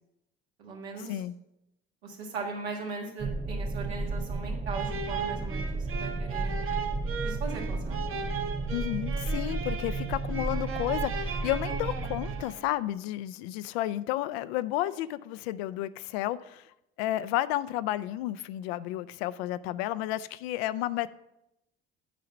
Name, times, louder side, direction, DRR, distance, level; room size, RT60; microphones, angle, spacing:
voice 1, 0.6-1.2 2.0-6.6 7.2-8.3, right 4 dB, 85° right, 1.6 m, -39 dB
sound 1, 3.2-12.4, right 3 dB, 20° right, 0.5 m, -33 dB
sound 2, 4.7-12.8, right 6 dB, 40° right, 0.9 m, -37 dB
voice 2, 8.7-16.7 17.0-21.1, left 14 dB, 75° left, 0.5 m, -32 dB
8.2 x 4.8 x 6.1 m
hypercardioid pair, 60°, 32 cm